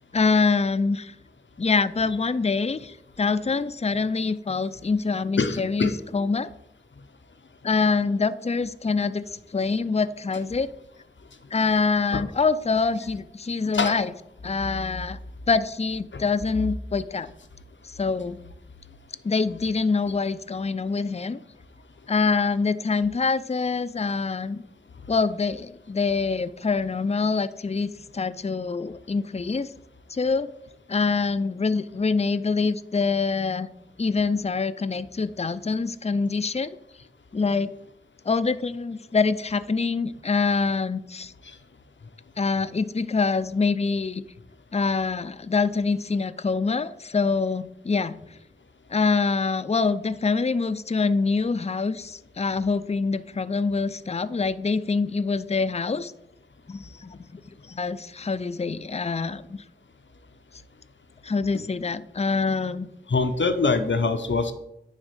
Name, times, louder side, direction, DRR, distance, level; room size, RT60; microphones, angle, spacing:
voice 1, 0.1-1.1 1.6-6.5 7.6-9.3 9.5-10.7 11.5-14.1 14.4-15.2 15.5-17.3 17.8-18.4 19.2-21.4 22.1-24.6 25.1-29.7 30.1-30.5 30.9-33.7 34.0-36.8 37.3-37.7 38.3-41.3 42.4-44.2 44.7-48.2 48.9-56.1 56.7-57.4 57.7-59.6 61.2-62.9, left 4 dB, 35° left, 13 dB, 0.4 m, -25 dB
voice 2, 5.4-5.9 12.1-12.2 13.7-14.0 16.1-16.2 63.1-64.5, left 4 dB, 80° left, 7 dB, 0.7 m, -24 dB
9.6 x 3.6 x 6.6 m, 0.81 s
wide cardioid pair, 45°, 19 cm